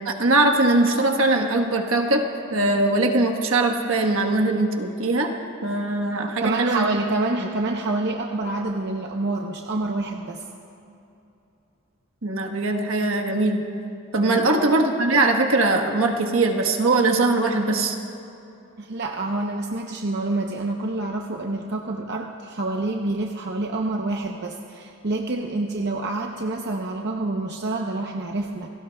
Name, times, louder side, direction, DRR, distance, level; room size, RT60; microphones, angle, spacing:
voice 1, 0.0-2.2 2.5-5.3 5.6-6.9 7.4-7.5 12.2-13.6 14.1-18.0, right 2 dB, 75° right, 3 dB, 1.3 m, -21 dB
voice 2, 6.2-10.4 14.1-14.5 18.8-28.7, right 2 dB, 55° right, 1 dB, 0.8 m, -27 dB
27.5 x 18.0 x 2.3 m, 2.8 s
head